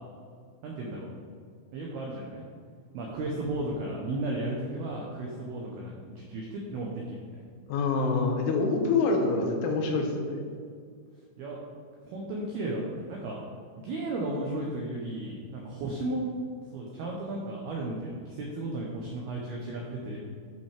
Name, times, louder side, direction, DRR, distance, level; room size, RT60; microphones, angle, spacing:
voice 1, 0.6-1.1 1.7-2.4 2.9-7.4 11.4-11.6 12.0-13.4 13.8-16.3 16.7-20.2, right 2 dB, 90° right, -2 dB, 2.2 m, -34 dB
voice 2, 7.7-10.4, left 3 dB, 85° left, 2 dB, 3.3 m, -26 dB
11.0 x 5.4 x 3.4 m, 2.1 s
omnidirectional pair, 5.7 m